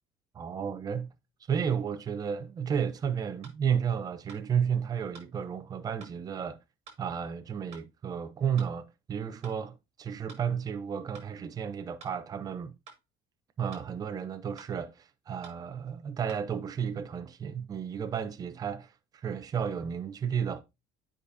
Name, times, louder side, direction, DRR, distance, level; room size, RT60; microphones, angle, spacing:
voice 1, 0.3-1.1 1.5-6.6 7.0-12.7 13.6-20.6, right 7 dB, 20° right, 0.6 m, -32 dB
sound 1, 3.4-3.6 4.3-4.4 5.1-5.3 6.0-6.2 6.9-7.0 7.7-7.9 8.6-8.7 9.4-9.6 10.3-10.5 11.1-11.3 12.0-12.2 12.9-13.0 13.7-13.9 14.6-14.7 15.4-15.6 16.3-16.4, right 6 dB, 35° right, 1.9 m, -50 dB
10.0 x 5.0 x 2.7 m
cardioid pair, 170°, 17 cm